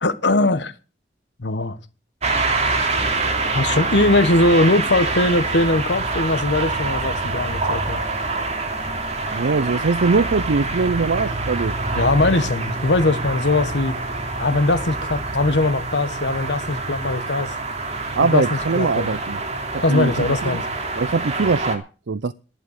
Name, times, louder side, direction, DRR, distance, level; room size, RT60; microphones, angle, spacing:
voice 1, 0.0-0.7 1.4-1.8 3.5-8.0 11.9-13.9 14.4-17.5 18.2-19.2 19.8-20.8, left 2 dB, 85° left, 1.3 m, -20 dB
sound 1, 2.2-21.8, right 3 dB, 40° right, 2.9 m, -26 dB
voice 2, 9.3-11.8 18.2-19.4 19.7-20.6 21.0-22.3, right 4 dB, 85° right, 0.6 m, -22 dB
12.0 x 11.5 x 6.5 m
head